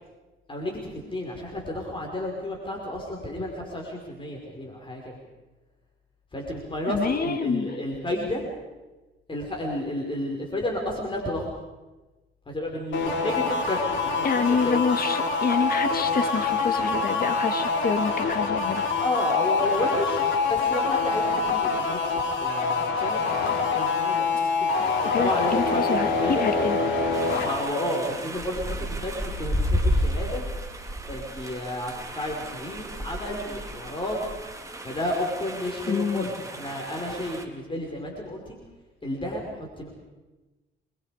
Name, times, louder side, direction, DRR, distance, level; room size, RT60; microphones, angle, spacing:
voice 1, 0.5-5.2 6.3-8.4 9.3-11.5 12.5-14.8 19.0-24.7 25.0-26.4 27.4-30.5 31.1-34.2 34.5-34.6 34.8-38.6 39.0-39.9, left 1 dB, 25° left, 0 dB, 5.2 m, -31 dB
voice 2, 6.8-7.8 14.2-18.8 25.1-26.8 35.9-36.3, left 5 dB, 50° left, 8 dB, 2.2 m, -27 dB
sound 1, 12.9-27.6, left 4 dB, 70° left, 5.2 m, -25 dB
sound 2, 27.1-37.4, equal, 15° right, 3.0 m, -32 dB
28.0 x 22.5 x 5.1 m, 1.1 s
cardioid pair, 90°, 20 cm